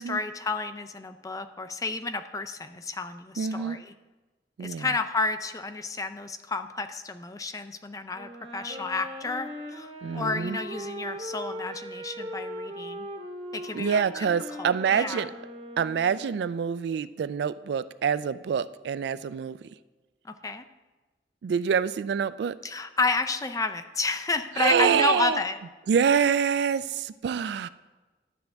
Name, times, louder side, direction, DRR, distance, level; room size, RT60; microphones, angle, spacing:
voice 1, 0.0-3.8 4.6-13.1 13.5-14.1 14.6-15.3 20.2-20.6 22.6-25.6, left 3 dB, 20° left, 9 dB, 0.4 m, -31 dB
voice 2, 3.4-3.8 4.6-4.9 10.0-10.6 13.7-15.3 15.8-19.6 21.4-22.6 24.6-25.4 25.9-27.7, right 7 dB, 65° right, 15 dB, 0.3 m, -26 dB
Wind instrument woodwind instrument, 8.1-16.5, equal, 35° right, 1.0 m, -39 dB
12.0 x 7.8 x 3.5 m, 1.2 s
head